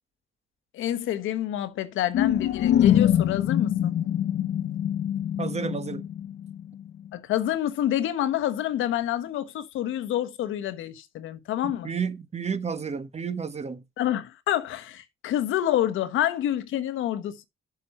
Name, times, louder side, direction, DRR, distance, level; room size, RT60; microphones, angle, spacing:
voice 1, 0.7-3.9 7.1-11.9 14.0-17.4, left 12 dB, 85° left, 1.2 m, -28 dB
sound 1, 2.1-6.7, left 10 dB, 60° left, 0.6 m, -24 dB
voice 2, 5.4-6.0 11.6-13.8, right 6 dB, 35° right, 1.2 m, -31 dB
7.5 x 7.1 x 4.3 m
cardioid pair, 90°, 20 cm